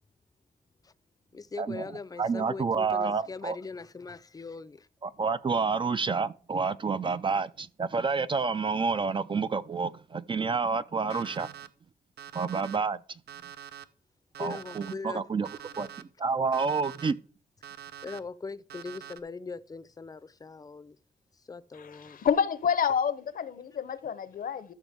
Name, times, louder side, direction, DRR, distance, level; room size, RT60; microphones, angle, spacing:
voice 1, 1.3-4.9 11.1-11.2 14.4-15.2 18.0-21.0 21.3-22.2, left 4 dB, 20° left, 0.5 m, -41 dB
voice 2, 2.2-3.6 5.0-11.5 12.3-13.0 14.4-15.5 15.8-17.2, right 5 dB, 30° right, 0.4 m, -29 dB
Alarm, 11.1-11.7 12.2-12.8 13.3-13.8 14.3-14.9 15.4-16.0 16.5-17.1 17.6-18.2 18.7-19.2, right 9 dB, 80° right, 0.6 m, -45 dB
voice 3, 22.0-24.7, left 7 dB, 60° left, 0.7 m, -28 dB
13.0 x 5.9 x 3.5 m
wide cardioid pair, 120°, 16 cm